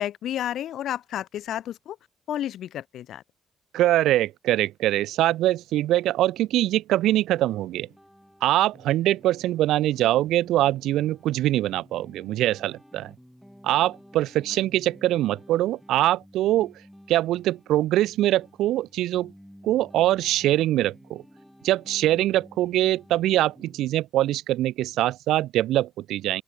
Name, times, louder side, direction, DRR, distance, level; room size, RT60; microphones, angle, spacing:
voice 1, 0.0-2.0 2.3-3.2, left 11 dB, 75° left, 0.4 m, -31 dB
voice 2, 3.7-7.9 8.4-13.1 13.6-16.7 17.1-19.3 19.6-21.2 21.6-26.4, right 14 dB, 85° right, 0.3 m, -23 dB
sound 1, 7.3-23.8, equal, ahead, 4.0 m, -52 dB
open air
cardioid pair, 90°, 0 cm